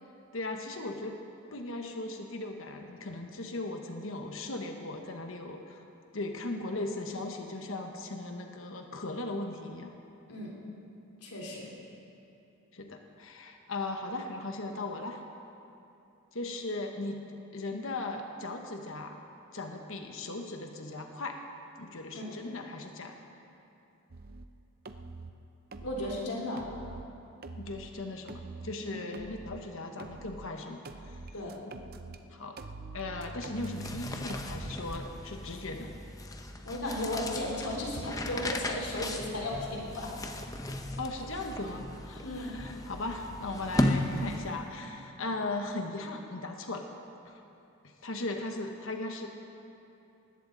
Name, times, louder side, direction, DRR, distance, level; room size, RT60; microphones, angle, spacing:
voice 1, 0.3-1.2 1.5-5.8 6.1-9.9 12.7-15.2 16.3-17.2 17.5-19.2 19.5-21.4 21.8-23.2 27.6-31.2 32.3-32.6 32.9-36.0 41.0-46.8 47.2-47.4 47.8-49.3, left 2 dB, 60° left, 4 dB, 1.2 m, -38 dB
voice 2, 11.2-11.7 22.1-22.4 25.8-26.7 28.9-29.1 31.3-31.6 36.6-40.1 42.2-42.6, left 1 dB, 85° left, -3 dB, 3.6 m, -35 dB
sound 1, 24.1-24.5 24.8-25.3 25.7-26.2 26.6-27.0 27.4-27.9 28.3-28.8 29.1-29.6 30.0-30.5 30.8-32.2 32.6-35.0, right 3 dB, 45° right, 0.6 m, -44 dB
sound 2, 33.5-44.7, left 1 dB, 15° left, 0.7 m, -36 dB
19.5 x 16.0 x 4.0 m, 2.9 s
head